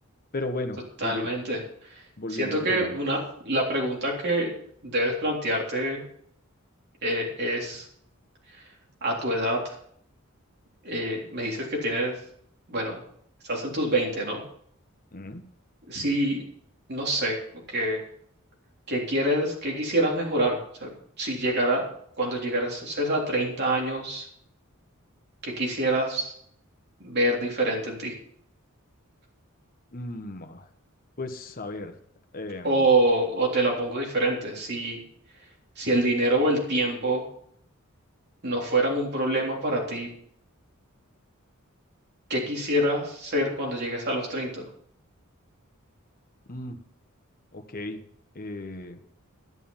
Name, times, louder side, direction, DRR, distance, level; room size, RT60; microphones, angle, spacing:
voice 1, 0.3-1.3 2.2-2.9 15.1-15.4 29.9-30.7 31.2-31.9 32.3-32.9 46.5-46.8 47.5-48.0 48.3-49.0, left 2 dB, 45° left, 6 dB, 1.2 m, -35 dB
voice 2, 1.0-1.6 2.3-3.2 3.5-4.5 4.8-6.0 7.0-7.9 9.0-9.7 10.8-12.1 12.7-13.0 13.4-14.4 15.9-16.4 16.9-17.4 17.7-18.0 18.9-20.9 21.2-21.9 22.2-24.3 25.4-26.3 27.0-28.1 32.6-35.0 35.8-37.2 38.4-40.1 42.3-44.6, right 1 dB, 50° right, -1 dB, 3.5 m, -26 dB
11.0 x 11.0 x 5.6 m, 0.66 s
head